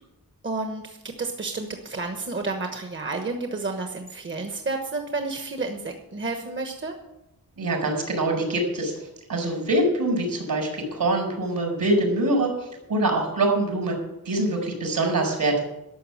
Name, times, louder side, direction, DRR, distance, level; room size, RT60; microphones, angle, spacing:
voice 1, 0.4-6.9, right 3 dB, 35° right, 5 dB, 1.2 m, -31 dB
voice 2, 7.6-8.9 9.3-12.5 12.9-14.0 14.2-15.6, right 2 dB, 70° right, 2 dB, 4.8 m, -24 dB
12.5 x 7.0 x 9.8 m, 0.90 s
wide cardioid pair, 170°, 35 cm